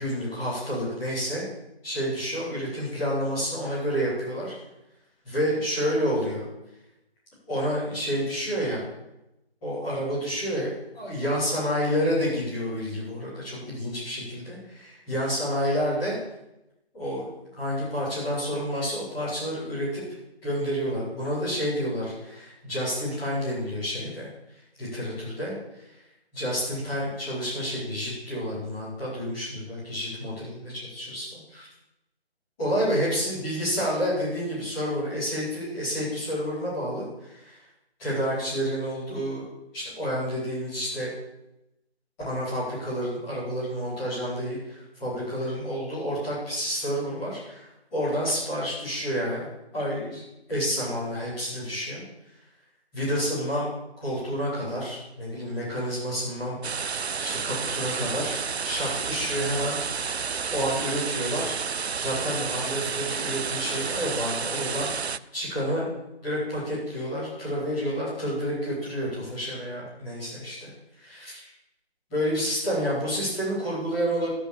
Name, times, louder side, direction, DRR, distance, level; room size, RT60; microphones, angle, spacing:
voice 1, 0.0-1.4 1.8-4.5 5.2-6.4 7.5-8.8 9.6-16.1 16.9-20.0 20.4-24.3 24.8-25.8 26.3-30.6 30.9-31.2 31.5-31.7 32.6-37.6 38.0-39.4 39.7-41.1 42.2-49.4 49.7-50.2 50.5-52.0 52.9-53.7 54.0-58.3 58.6-59.8 60.1-60.2 60.5-61.6 62.0-65.9 66.2-70.7 71.0-71.5 72.1-74.3, equal, 10° left, -13 dB, 4.9 m, -29 dB
sound 1, 56.6-65.2, right 6 dB, 80° right, 0.5 m, -30 dB
14.5 x 5.6 x 7.6 m, 0.91 s
figure-of-eight pair, 160°, 32 cm